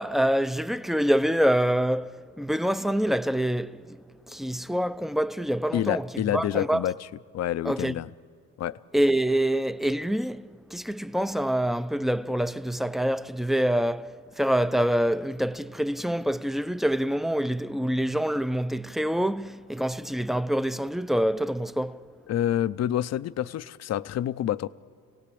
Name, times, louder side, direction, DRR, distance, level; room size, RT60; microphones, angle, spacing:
voice 1, 0.0-4.0 4.3-6.1 6.3-6.8 7.6-7.9 8.9-22.0, equal, ahead, 0.5 m, -26 dB
voice 2, 5.7-7.1 7.3-8.1 8.6-8.8 22.3-24.7, left 11 dB, 60° left, 0.6 m, -28 dB
29.0 x 17.5 x 8.5 m
cardioid pair, 90°, 30 cm